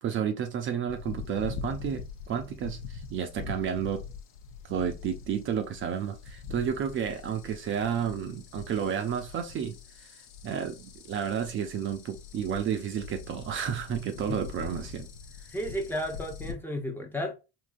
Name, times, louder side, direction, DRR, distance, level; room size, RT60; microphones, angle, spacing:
voice 1, 0.0-4.0 4.7-10.1 10.4-15.1, right 8 dB, 40° right, 0.5 m, -31 dB
sound 1, 0.9-16.5, left 6 dB, 75° left, 0.7 m, -43 dB
voice 2, 15.5-17.3, equal, 5° left, 0.7 m, -33 dB
3.6 x 2.7 x 2.5 m
supercardioid pair, 105°, 31 cm